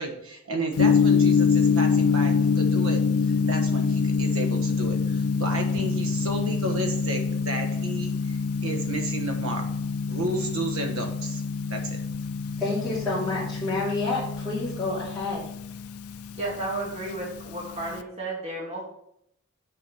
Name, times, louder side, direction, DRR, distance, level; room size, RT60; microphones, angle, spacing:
voice 1, 0.0-8.4 8.6-9.7 10.1-11.4 11.7-12.0, right 2 dB, 70° right, 3 dB, 1.4 m, -32 dB
Gong, 0.8-18.0, left 5 dB, 85° left, 0.5 m, -26 dB
voice 2, 12.6-15.4, left 2 dB, ahead, -13 dB, 2.7 m, -29 dB
voice 3, 16.4-18.8, right 2 dB, 30° right, -4 dB, 2.1 m, -32 dB
6.9 x 4.7 x 5.9 m, 0.73 s
head